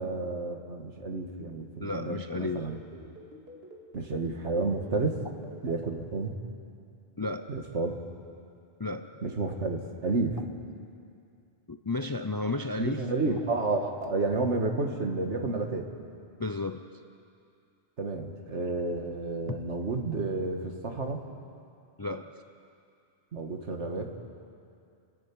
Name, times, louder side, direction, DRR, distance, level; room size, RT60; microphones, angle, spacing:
voice 1, 0.0-2.8 3.9-5.2 5.6-6.4 7.5-7.9 9.2-10.4 12.8-15.9 18.0-21.2 23.3-24.1, right 3 dB, 80° right, 3 dB, 2.0 m, -31 dB
voice 2, 1.8-2.7 7.2-7.5 8.8-9.1 11.7-13.4 16.4-16.9 19.5-19.6 22.0-22.3, left 2 dB, 25° left, 7 dB, 0.5 m, -33 dB
sound 1, 2.1-5.9, right 1 dB, 55° right, 2.7 m, -47 dB
29.5 x 10.5 x 8.6 m, 2.5 s
omnidirectional pair, 1.2 m